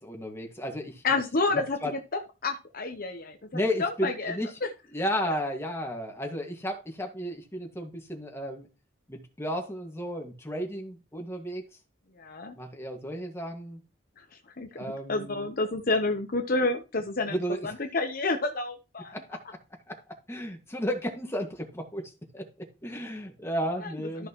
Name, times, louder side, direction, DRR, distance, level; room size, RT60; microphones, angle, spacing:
voice 1, 0.0-1.0 1.8-1.9 3.5-4.5 4.9-8.7 9.1-11.6 12.5-13.8 14.7-15.5 17.3-17.7 19.1-19.4 19.9-24.3, equal, 15° left, 2 dB, 1.9 m, -33 dB
voice 2, 1.0-4.4 12.2-12.5 14.2-19.1 23.8-23.9 24.2-24.3, left 3 dB, 50° left, 5 dB, 1.0 m, -30 dB
13.5 x 6.3 x 3.1 m, 0.30 s
head